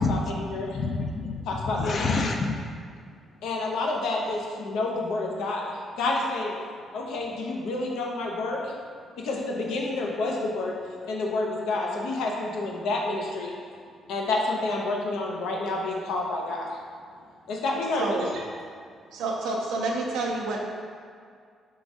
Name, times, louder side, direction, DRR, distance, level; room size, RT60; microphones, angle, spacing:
voice 1, 0.0-0.8 1.5-2.1 3.4-6.5 6.9-8.7 9.2-10.8 11.1-13.5 14.1-16.7 17.5-18.2, left 2 dB, 85° left, -1 dB, 0.7 m, -29 dB
voice 2, 0.5-2.5, left 3 dB, 50° left, 3 dB, 0.5 m, -28 dB
voice 3, 18.0-18.4 19.1-20.6, right 3 dB, 90° right, -1 dB, 0.6 m, -29 dB
3.8 x 2.6 x 4.7 m, 2.2 s
cardioid pair, 90°, 0 cm